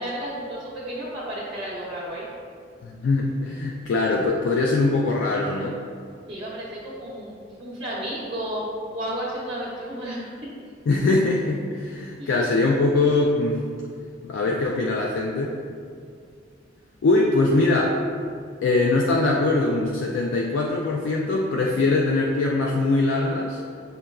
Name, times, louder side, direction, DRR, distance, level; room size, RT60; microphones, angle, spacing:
voice 1, 0.0-2.3 6.3-7.3 7.6-10.3 12.2-12.4, right 1 dB, 30° right, -9 dB, 0.6 m, -32 dB
voice 2, 2.8-5.8 10.9-13.6 14.2-15.6 17.0-18.0 18.6-23.6, left 2 dB, 75° left, -1 dB, 0.3 m, -22 dB
6.3 x 2.2 x 2.3 m, 2.2 s
head